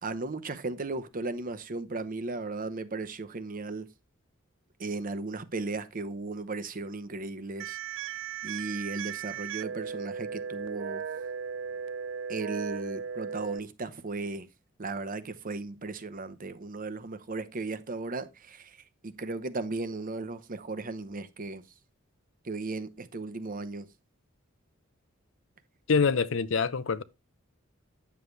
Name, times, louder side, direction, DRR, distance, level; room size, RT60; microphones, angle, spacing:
voice 1, 0.0-3.9 4.8-7.8 8.1-11.0 12.3-14.5 14.8-21.6 22.4-23.9, right 3 dB, 45° right, 0.8 m, -36 dB
sound 1, 7.6-13.6, right 7 dB, 65° right, 0.4 m, -36 dB
voice 2, 25.9-27.0, left 5 dB, 70° left, 0.6 m, -25 dB
9.5 x 7.0 x 3.3 m
head